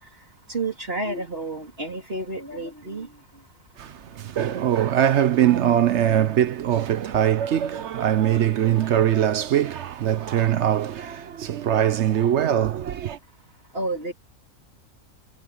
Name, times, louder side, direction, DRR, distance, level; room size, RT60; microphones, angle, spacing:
voice 1, 0.5-3.1 13.7-14.1, right 2 dB, 40° right, 3.7 m, -30 dB
voice 2, 3.8-13.2, right 10 dB, 60° right, 0.8 m, -22 dB
omnidirectional pair, 1.6 m